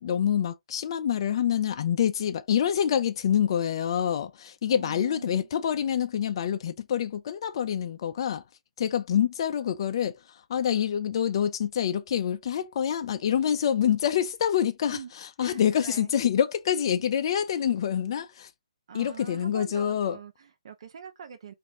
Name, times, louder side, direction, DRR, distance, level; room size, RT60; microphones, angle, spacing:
voice 1, 0.0-8.4 8.8-18.5 18.9-20.2, left 9 dB, 45° left, 0.3 m, -26 dB
voice 2, 4.7-5.5 14.9-15.1 15.4-16.1 18.9-21.5, right 7 dB, 55° right, 0.7 m, -44 dB
3.0 x 2.5 x 3.5 m
figure-of-eight pair, 135°, 3 cm